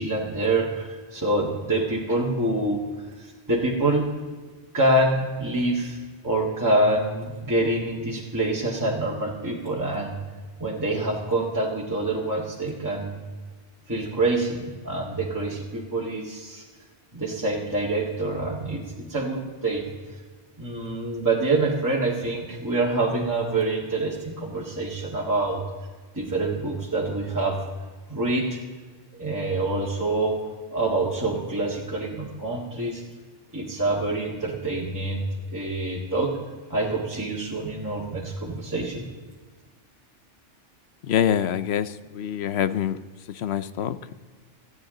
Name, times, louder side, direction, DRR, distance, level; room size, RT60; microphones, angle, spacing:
voice 1, 0.0-2.8 3.2-4.1 4.7-6.0 6.2-10.1 10.6-13.1 13.9-16.6 17.1-19.9 20.6-25.6 26.1-27.6 28.1-28.6 29.2-30.4 30.7-33.0 33.5-36.3 36.7-39.0, right 2 dB, 15° right, 1.9 m, -26 dB
voice 2, 41.1-43.0 43.4-44.1, left 9 dB, 65° left, 0.9 m, -25 dB
18.5 x 14.0 x 3.8 m
omnidirectional pair, 1.2 m